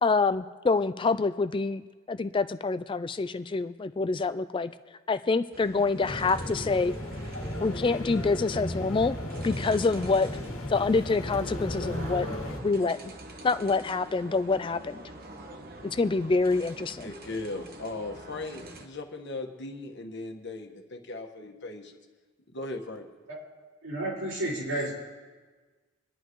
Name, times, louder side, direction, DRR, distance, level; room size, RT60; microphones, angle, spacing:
voice 1, 0.0-4.7 5.1-6.9 7.6-9.2 9.4-10.4 10.7-12.3 12.6-13.1 13.4-15.0 15.8-17.1, left 4 dB, 25° left, 12 dB, 0.3 m, -26 dB
sound 1, 5.5-18.9, right 1 dB, 45° right, 1.0 m, -45 dB
sound 2, 6.0-12.6, left 1 dB, 80° left, 1.7 m, -35 dB
voice 2, 16.9-22.0 22.5-23.1, left 2 dB, 55° left, 3 dB, 1.4 m, -38 dB
voice 3, 23.8-25.0, right 1 dB, 90° right, -6 dB, 5.3 m, -31 dB
26.5 x 10.5 x 3.1 m, 1.4 s
head